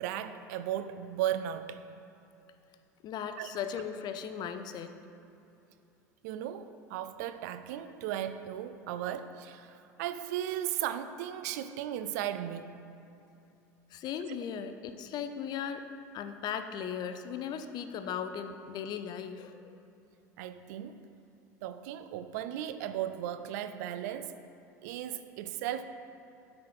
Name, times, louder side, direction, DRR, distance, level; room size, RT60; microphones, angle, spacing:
voice 1, 0.0-1.8 3.4-3.5 6.2-12.7 14.3-14.4 20.4-21.0 21.6-24.4 24.8-25.8, right 11 dB, 70° right, 11 dB, 0.4 m, -36 dB
voice 2, 3.0-4.9 13.9-15.8 16.1-19.7, left 8 dB, 50° left, 9 dB, 0.5 m, -37 dB
8.4 x 4.3 x 4.7 m, 2.7 s
hypercardioid pair, 80°, 9 cm